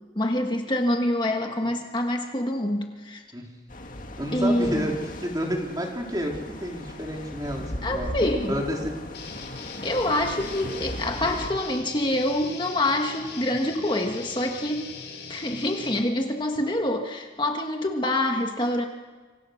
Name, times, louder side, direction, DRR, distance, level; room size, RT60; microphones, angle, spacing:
voice 1, 0.1-3.2 4.3-4.9 7.8-8.6 9.8-14.9 15.3-18.9, left 1 dB, 25° left, 3 dB, 1.5 m, -26 dB
sound 1, 3.7-11.5, left 1 dB, 50° left, 2.1 m, -37 dB
voice 2, 4.2-8.1 8.5-9.0, equal, 20° right, 1 dB, 3.5 m, -30 dB
sound 2, 9.1-16.0, left 4 dB, 75° left, 5.9 m, -40 dB
27.0 x 25.5 x 6.5 m, 1.4 s
head